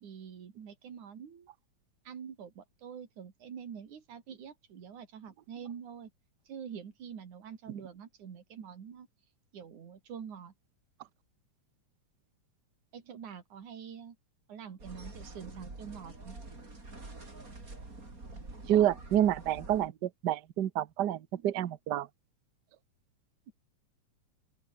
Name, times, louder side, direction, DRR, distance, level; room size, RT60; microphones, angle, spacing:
voice 1, 0.0-1.5 2.1-6.1 6.5-9.1 9.5-10.5 12.9-14.2 14.5-16.4 23.5-23.6, right 7 dB, 90° right, 4.2 m, -46 dB
sound 1, 14.8-19.9, right 2 dB, 25° right, 5.2 m, -46 dB
voice 2, 18.7-22.1, right 11 dB, 70° right, 1.0 m, -28 dB
open air
omnidirectional pair, 3.3 m